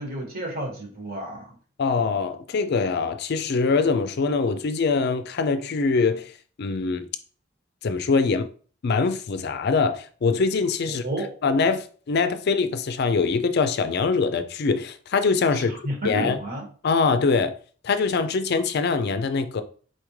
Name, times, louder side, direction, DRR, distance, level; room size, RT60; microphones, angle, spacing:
voice 1, 0.0-1.5 10.9-11.3 15.5-16.7, right 1 dB, 50° right, 1.5 m, -31 dB
voice 2, 1.8-6.3 6.6-7.1 7.8-8.5 8.8-11.0 11.4-15.8 16.0-16.4 16.8-17.6 17.8-19.6, left 4 dB, 55° left, 0.4 m, -23 dB
4.3 x 3.5 x 3.1 m
head